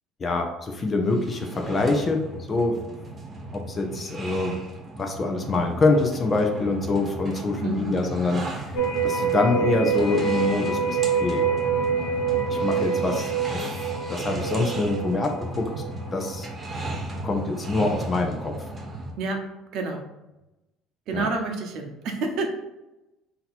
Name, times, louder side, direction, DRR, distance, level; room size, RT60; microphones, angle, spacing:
voice 1, 0.2-2.8 3.5-4.6 5.0-8.7 9.0-11.4 12.5-15.7 16.1-16.5 17.2-18.6 21.1-21.3, left 3 dB, 30° left, 4 dB, 0.7 m, -25 dB
sound 1, 1.0-19.1, right 1 dB, 30° right, 1.1 m, -36 dB
voice 2, 7.6-8.0 19.2-20.1 21.1-22.5, right 3 dB, 65° right, 4 dB, 0.8 m, -29 dB
sound 2, 8.7-16.5 16.9-17.0, right 6 dB, 85° left, 0.8 m, -26 dB
3.9 x 2.9 x 4.1 m, 0.99 s
cardioid pair, 110°, 0 cm